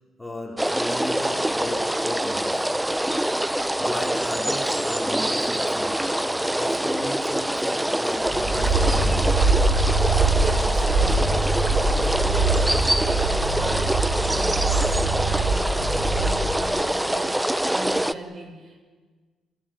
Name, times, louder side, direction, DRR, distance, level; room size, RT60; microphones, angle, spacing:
voice 1, 0.2-2.7 3.8-6.1 6.5-9.5, left 1 dB, 10° left, 0 dB, 4.3 m, -35 dB
sound 1, 0.6-18.1, right 1 dB, 5° right, 0.7 m, -25 dB
sound 2, 8.2-16.6, right 3 dB, 90° right, 6.7 m, -23 dB
voice 2, 9.9-18.8, right 2 dB, 45° right, 4 dB, 6.6 m, -38 dB
28.5 x 16.5 x 9.1 m, 1.4 s
cardioid pair, 90°, 0 cm